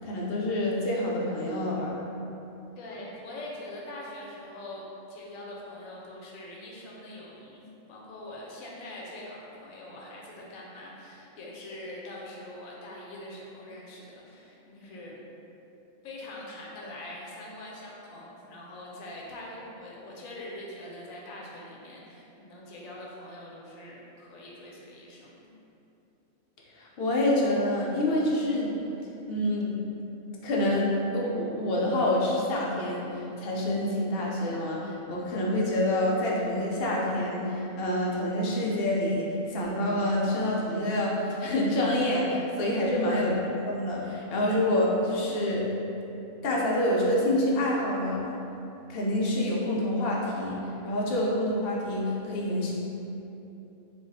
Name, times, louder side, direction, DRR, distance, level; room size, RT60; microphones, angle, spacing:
voice 1, 0.0-2.0 26.8-28.8 29.3-29.8 30.4-45.7 46.4-48.2 48.9-52.7, left 1 dB, 65° left, -3 dB, 0.6 m, -27 dB
voice 2, 2.8-7.6 7.9-15.2 16.0-25.5 42.6-43.2, left 1 dB, 85° left, -3 dB, 1.0 m, -43 dB
2.5 x 2.3 x 3.9 m, 2.9 s
omnidirectional pair, 1.4 m